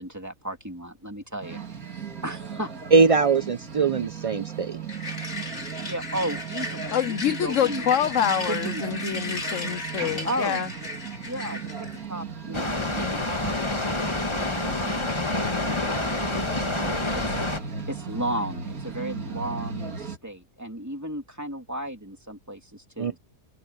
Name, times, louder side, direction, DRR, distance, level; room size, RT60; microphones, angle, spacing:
voice 1, 0.0-2.7 5.8-8.1 8.5-8.8 10.2-10.6 11.2-13.8 14.7-15.0 15.5-16.8 17.1-17.2 17.5-23.2, right 1 dB, 10° right, 2.9 m, -35 dB
sound 1, 1.4-20.2, right 6 dB, 90° right, 3.0 m, -36 dB
voice 2, 2.9-4.8 23.0-23.1, right 4 dB, 65° right, 0.3 m, -21 dB
sound 2, 4.9-12.0, left 2 dB, 50° left, 3.2 m, -35 dB
voice 3, 6.9-10.7, left 9 dB, 70° left, 0.9 m, -26 dB
Water, 12.5-17.6, left 2 dB, 20° left, 1.6 m, -28 dB
omnidirectional pair, 1.5 m